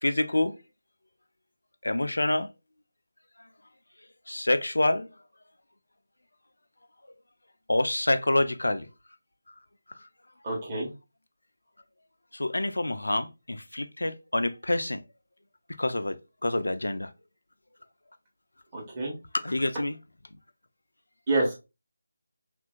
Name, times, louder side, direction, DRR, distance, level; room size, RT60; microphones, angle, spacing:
voice 1, 0.0-0.5 1.8-2.5 4.3-5.1 7.7-8.9 12.3-15.0 15.8-17.1 19.4-19.9, left 1 dB, 75° left, 0.3 m, -27 dB
voice 2, 10.4-10.9 18.7-19.1 21.3-21.5, right 2 dB, 25° right, 1.0 m, -27 dB
2.9 x 2.5 x 2.3 m
figure-of-eight pair, 155°, 0 cm